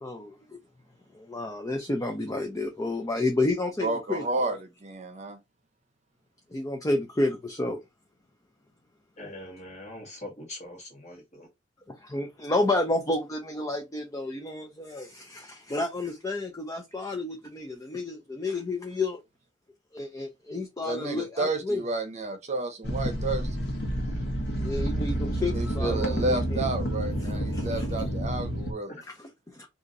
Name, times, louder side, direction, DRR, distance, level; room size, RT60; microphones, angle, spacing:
voice 1, 0.0-0.6 1.1-4.5 6.5-7.8 12.1-19.2 19.9-21.8 24.6-26.6 27.5-27.9 29.5-29.7, left 2 dB, 20° left, 0.5 m, -30 dB
voice 2, 3.8-4.6 4.8-5.4 20.8-23.5 25.5-28.9, right 2 dB, 35° right, 0.8 m, -31 dB
voice 3, 9.2-11.5 28.9-29.0, left 1 dB, 40° left, 1.5 m, -42 dB
dune buggys nearby semidistant distant engine revs and pop, 22.8-28.7, equal, 60° left, 1.1 m, -29 dB
2.9 x 2.5 x 3.8 m
head